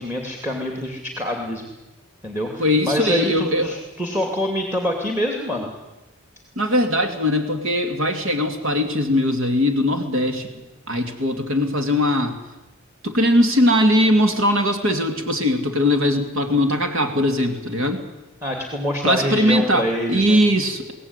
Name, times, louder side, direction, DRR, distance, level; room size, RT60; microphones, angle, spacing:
voice 1, 0.0-1.7 2.2-5.7 18.4-20.4, equal, 10° right, 3 dB, 2.7 m, -25 dB
voice 2, 2.6-3.7 6.6-10.5 10.9-12.4 13.0-18.0 19.0-20.9, left 1 dB, 65° right, 6 dB, 2.6 m, -20 dB
23.0 x 17.0 x 9.8 m, 1.1 s
head